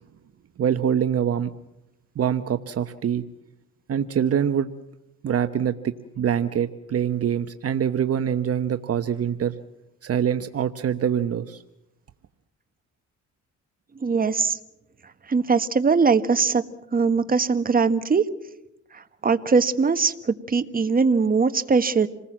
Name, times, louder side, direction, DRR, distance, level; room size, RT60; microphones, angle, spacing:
voice 1, 0.6-1.5 2.2-3.2 3.9-4.7 5.2-9.5 10.0-11.6, right 8 dB, 50° right, 9 dB, 1.0 m, -24 dB
voice 2, 14.0-14.6 15.3-16.6 16.9-18.2 18.9-22.1, right 5 dB, 30° right, 10 dB, 1.5 m, -21 dB
28.0 x 20.0 x 7.5 m, 0.87 s
cardioid pair, 90°, 30 cm